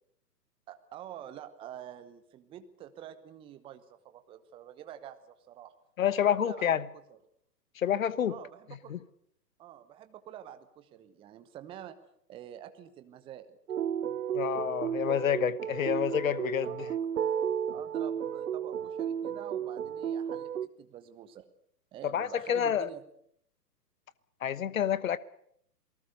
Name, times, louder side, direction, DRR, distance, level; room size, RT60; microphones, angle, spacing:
voice 1, 0.7-5.7 6.0-7.2 8.3-9.0 9.6-12.0 12.3-13.6 16.6-17.0 17.7-21.5 21.9-23.0, right 10 dB, 10° right, 0.9 m, -47 dB
voice 2, 6.0-6.8 7.8-8.3 8.9-9.0 14.3-16.9 22.1-22.9 24.4-25.2, left 9 dB, 55° left, 1.2 m, -28 dB
sound 1, 13.7-20.7, right 8 dB, 60° right, 0.9 m, -33 dB
27.5 x 19.5 x 6.7 m
figure-of-eight pair, 125°, 49 cm